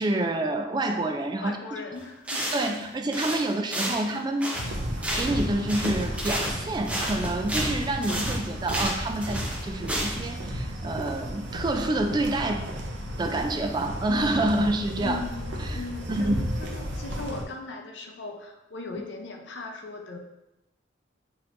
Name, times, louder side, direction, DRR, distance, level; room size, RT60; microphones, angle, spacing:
voice 1, 0.0-1.6 2.5-4.5 5.2-12.7 13.2-15.2 15.6-15.8 16.1-16.4, right 1 dB, 25° right, 4 dB, 0.3 m, -27 dB
voice 2, 1.4-2.4 15.0-20.2, left 3 dB, 80° left, 3 dB, 0.6 m, -38 dB
sound 1, 1.9-2.0 2.3-2.8 3.1-5.4 5.7-10.3, equal, 5° right, 0.7 m, -31 dB
sound 2, 4.6-17.4, equal, 85° right, 0.6 m, -33 dB
6.1 x 3.0 x 2.5 m, 0.92 s
head